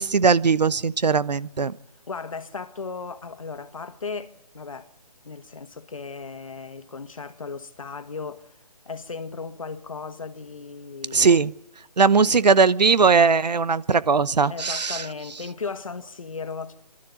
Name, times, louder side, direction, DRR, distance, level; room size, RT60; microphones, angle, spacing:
voice 1, 0.0-1.7 11.1-11.5 12.0-15.0, right 5 dB, 85° right, 1.0 m, -19 dB
voice 2, 2.1-4.9 5.2-8.5 8.8-11.4 12.2-12.4 14.5-16.8, left 4 dB, 55° left, 1.6 m, -36 dB
26.0 x 13.0 x 9.4 m
hypercardioid pair, 175°, 21 cm